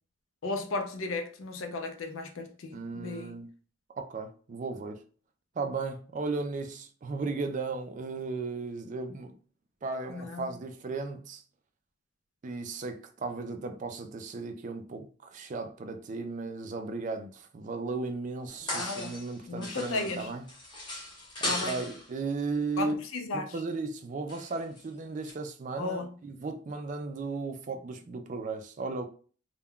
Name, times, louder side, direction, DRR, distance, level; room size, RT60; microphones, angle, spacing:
voice 1, 0.4-3.4 10.1-10.5 18.6-19.1 19.5-20.3 21.5-21.7 22.8-23.6 25.8-26.1, left 2 dB, 85° left, 0.5 m, -35 dB
voice 2, 2.7-3.5 4.0-5.0 5.6-9.3 9.8-11.4 12.4-20.5 21.4-23.0 23.3-29.1, right 3 dB, 40° right, 0.3 m, -35 dB
sound 1, 18.5-19.4 19.6-22.1 24.3-24.8 25.2-25.3, left 1 dB, 25° left, 0.8 m, -37 dB
3.5 x 2.2 x 2.2 m
head